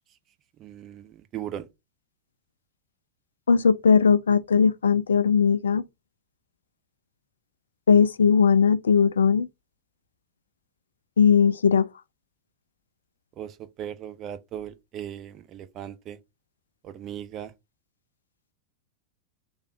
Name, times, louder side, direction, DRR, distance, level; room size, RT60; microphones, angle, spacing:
voice 1, 0.6-1.7 13.4-16.2 16.8-17.5, right 10 dB, 35° right, 0.5 m, -38 dB
voice 2, 3.5-5.8 7.9-9.5 11.2-11.9, left 6 dB, 70° left, 0.3 m, -19 dB
3.5 x 2.4 x 4.1 m
figure-of-eight pair, 90°, 0 cm